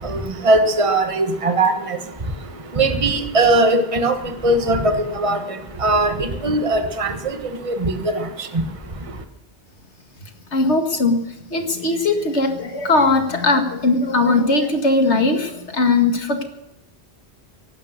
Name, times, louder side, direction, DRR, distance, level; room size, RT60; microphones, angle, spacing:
voice 1, 0.0-2.0 2.8-4.1 4.4-4.9 5.2-5.4 5.8-7.1 7.6-7.9 8.5-8.6, right 2 dB, 30° right, 6 dB, 1.4 m, -19 dB
voice 2, 10.5-11.2 11.5-16.4, left 3 dB, 80° left, 5 dB, 2.2 m, -19 dB
16.5 x 12.0 x 6.6 m, 0.89 s
omnidirectional pair, 1.1 m